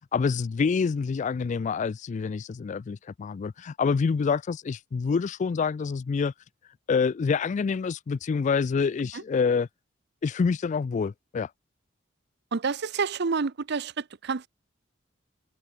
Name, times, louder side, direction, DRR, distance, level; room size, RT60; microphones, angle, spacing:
voice 1, 0.1-6.3 6.9-9.7 10.2-11.5, left 5 dB, 40° left, 0.3 m, -27 dB
voice 2, 12.5-14.5, right 5 dB, 60° right, 0.7 m, -29 dB
head